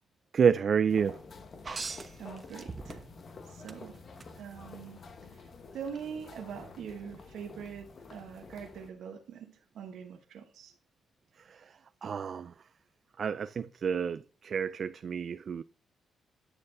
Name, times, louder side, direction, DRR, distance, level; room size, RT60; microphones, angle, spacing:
voice 1, 0.3-1.2 11.5-12.5 13.2-15.6, right 6 dB, 55° right, 0.3 m, -29 dB
sound 1, 0.9-8.9, left 4 dB, 55° left, 1.1 m, -50 dB
sound 2, 1.6-3.3 3.7-4.3 5.9-6.0, right 4 dB, 35° right, 1.0 m, -40 dB
voice 2, 2.2-3.0 3.4-4.0 4.4-5.0 5.3-5.4 5.7-10.7, right 7 dB, 80° right, 1.0 m, -43 dB
9.7 x 6.5 x 2.6 m
cardioid pair, 75°, 0 cm